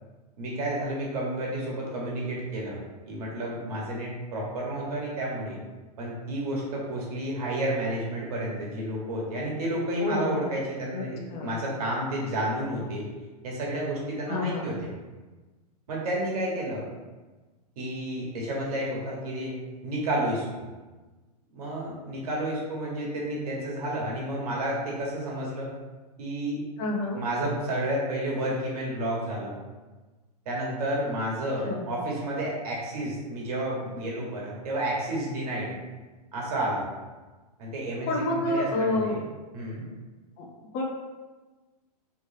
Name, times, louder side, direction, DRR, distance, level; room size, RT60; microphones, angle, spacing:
voice 1, 0.4-2.8 3.1-5.6 6.0-13.1 13.4-14.7 15.9-16.8 17.8-19.6 19.8-20.6 21.5-25.7 26.2-26.6 27.2-29.6 30.4-35.7 36.3-36.9 37.6-39.2 39.5-39.8, right 1 dB, 70° right, -3 dB, 1.3 m, -31 dB
voice 2, 10.0-10.5 10.9-11.6 14.3-14.8 26.8-27.2 31.7-31.8 38.1-39.2 40.4-40.5 40.7-40.8, left 2 dB, 35° left, 0 dB, 0.7 m, -29 dB
3.2 x 3.2 x 2.7 m, 1.2 s
hypercardioid pair, 125°, 20 cm